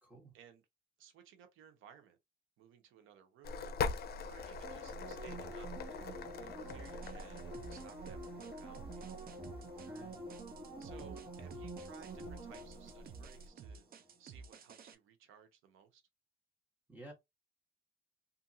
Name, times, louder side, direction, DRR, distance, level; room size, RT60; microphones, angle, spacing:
voice 1, 0.0-0.3 9.8-10.3 16.9-17.1, right 2 dB, 10° right, 1.3 m, -53 dB
voice 2, 1.0-2.2 2.6-6.1 6.4-9.1 10.8-16.0, right 8 dB, 90° right, 0.7 m, -60 dB
sound 1, 3.4-13.5, left 4 dB, 55° left, 0.5 m, -44 dB
sound 2, 4.6-14.0 14.4-14.5, right 1 dB, 35° right, 1.0 m, -48 dB
sound 3, 6.7-14.9, right 5 dB, 50° right, 0.5 m, -53 dB
2.7 x 2.5 x 2.6 m
cardioid pair, 90°, 20 cm